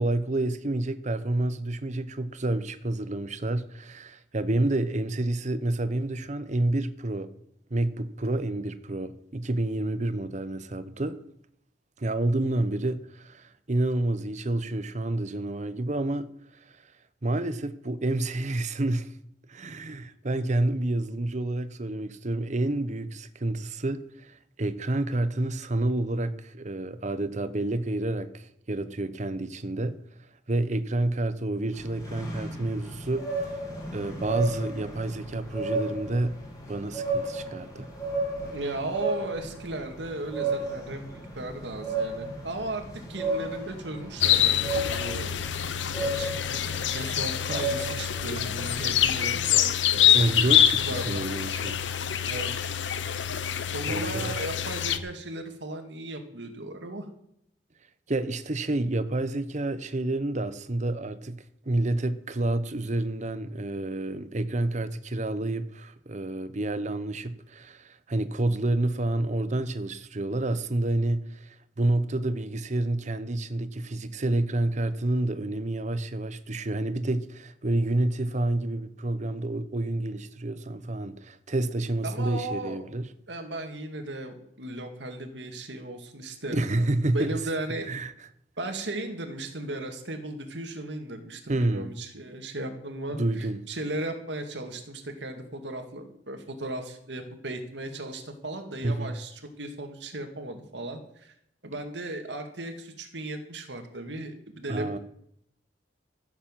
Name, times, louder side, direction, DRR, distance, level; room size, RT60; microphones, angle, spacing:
voice 1, 0.0-7.3 7.7-11.2 12.0-16.8 17.2-19.1 19.5-30.0 30.5-33.6 33.9-36.4 36.7-37.9 50.1-51.8 53.9-54.3 58.1-83.1 86.5-87.4 87.9-88.1 91.5-91.9 93.2-93.6 98.8-99.2 104.7-105.0, right 2 dB, 40° right, 0.9 m, -29 dB
sound 1, 31.7-49.2, right 2 dB, 20° left, 3.4 m, -34 dB
voice 2, 38.5-45.3 46.0-46.3 46.9-50.6 50.9-51.2 52.2-52.7 53.7-57.1 82.0-82.8 83.3-86.9 87.1-87.9 88.6-101.3 101.6-104.9, right 2 dB, 75° right, 2.2 m, -36 dB
sound 2, 44.2-55.0, left 10 dB, 85° left, 0.8 m, -25 dB
15.0 x 7.3 x 7.4 m
head